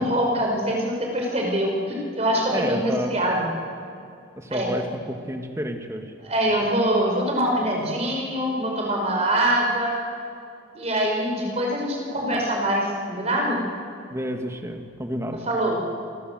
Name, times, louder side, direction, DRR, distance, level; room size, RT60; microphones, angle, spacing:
voice 1, 0.0-3.5 4.5-4.7 6.2-9.9 10.7-13.6 15.5-15.8, right 1 dB, 35° right, 0 dB, 5.4 m, -24 dB
voice 2, 2.3-3.2 4.4-6.1 14.1-15.4, equal, 15° right, 4 dB, 1.9 m, -30 dB
27.5 x 19.5 x 7.9 m, 2.5 s
head